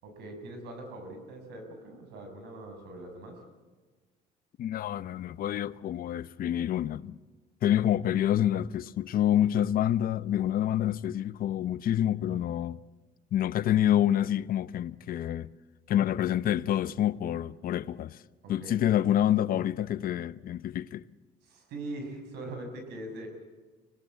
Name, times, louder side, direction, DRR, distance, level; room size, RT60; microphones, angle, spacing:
voice 1, 0.0-3.4 18.4-19.1 21.4-23.3, right 1 dB, 85° right, 6.6 m, -42 dB
voice 2, 4.6-7.2 7.6-12.8 13.3-15.5 15.9-18.2 18.5-21.0, left 11 dB, 60° left, 0.8 m, -27 dB
25.5 x 18.5 x 8.6 m
cardioid pair, 110°, 17 cm